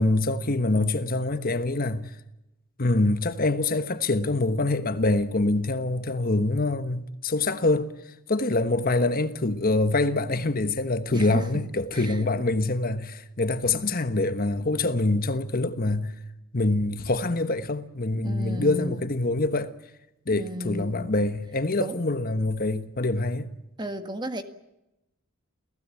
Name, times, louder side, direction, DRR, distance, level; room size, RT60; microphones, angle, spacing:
voice 1, 0.0-2.1 2.8-7.9 8.3-16.1 16.5-19.7 20.3-23.5, left 2 dB, 40° left, 1.2 m, -25 dB
voice 2, 11.1-11.6 11.9-12.2 18.2-19.0 20.3-21.1 21.8-22.0 23.8-24.4, equal, 20° right, 1.8 m, -33 dB
29.0 x 16.5 x 8.6 m
head